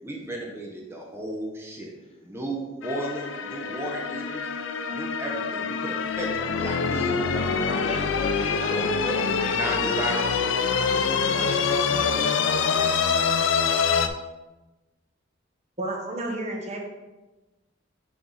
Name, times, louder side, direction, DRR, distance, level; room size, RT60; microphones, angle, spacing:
voice 1, 0.0-1.9 2.2-4.5 4.9-7.8 8.5-8.9 9.5-11.5 12.1-12.6, right 1 dB, 15° right, -1 dB, 0.8 m, -34 dB
sound 1, 2.8-14.1, left 5 dB, 70° left, 0.4 m, -25 dB
voice 2, 7.8-9.8 11.3-13.9, left 1 dB, 30° left, 1 dB, 0.9 m, -37 dB
voice 3, 15.8-16.8, right 1 dB, 35° right, 0 dB, 1.0 m, -31 dB
6.0 x 4.7 x 4.0 m, 1.1 s
head